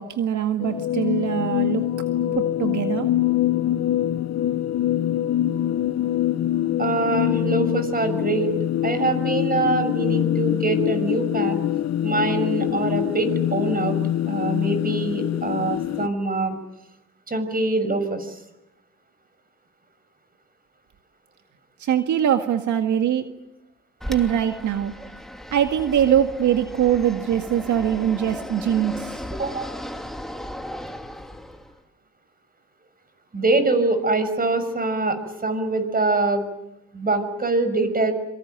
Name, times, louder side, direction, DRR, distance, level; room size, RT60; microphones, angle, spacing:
voice 1, 0.0-1.8 2.4-3.1 21.8-23.3 24.1-24.9 25.5-29.2, right 10 dB, 70° right, 6 dB, 2.0 m, -22 dB
sound 1, 0.6-16.1, left 12 dB, 60° left, 0.9 m, -24 dB
voice 2, 6.8-8.5 8.8-11.6 12.0-14.0 14.3-16.6 17.3-18.4 29.3-29.7 33.3-36.5 36.9-38.1, right 3 dB, 30° right, 10 dB, 6.5 m, -24 dB
Fixed-wing aircraft airplane, 24.0-31.8, equal, ahead, 2.9 m, -36 dB
26.5 x 24.5 x 9.1 m, 0.90 s
cardioid pair, 90°, 30 cm